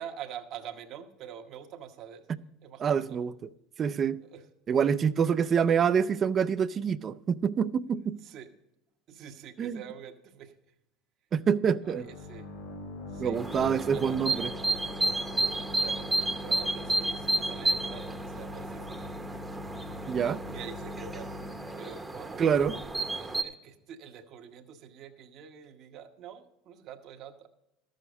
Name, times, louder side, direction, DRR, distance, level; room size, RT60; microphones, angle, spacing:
voice 1, 0.0-2.3 2.6-3.2 4.2-4.4 8.2-8.5 9.1-10.5 11.8-12.5 13.1-14.5 15.8-16.1 16.4-19.1 20.5-21.5 21.8-22.7 23.2-27.5, right 8 dB, 55° right, 4 dB, 1.0 m, -45 dB
voice 2, 2.8-3.3 3.8-4.2 4.7-8.2 9.6-9.8 11.3-12.0 13.2-14.5 20.1-20.4 22.4-22.7, right 7 dB, 35° right, 15 dB, 0.5 m, -26 dB
sound 1, 11.8-23.3, left 2 dB, 80° left, 4.0 m, -43 dB
sound 2, 13.3-23.4, right 2 dB, 10° right, 0.9 m, -32 dB
13.0 x 6.4 x 5.3 m, 0.89 s
hypercardioid pair, 90°, 0 cm